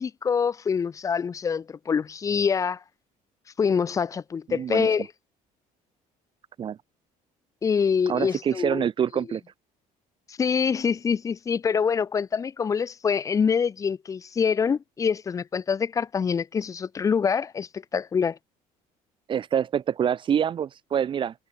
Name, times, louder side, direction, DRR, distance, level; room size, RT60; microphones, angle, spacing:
voice 1, 0.0-2.8 3.6-5.1 7.6-8.8 9.1-9.2 10.3-18.4, left 6 dB, 20° left, 0.8 m, -25 dB
voice 2, 4.5-4.9 6.6-6.8 8.1-9.4 19.3-21.3, right 8 dB, 35° right, 2.6 m, -26 dB
cardioid pair, 165°, 15 cm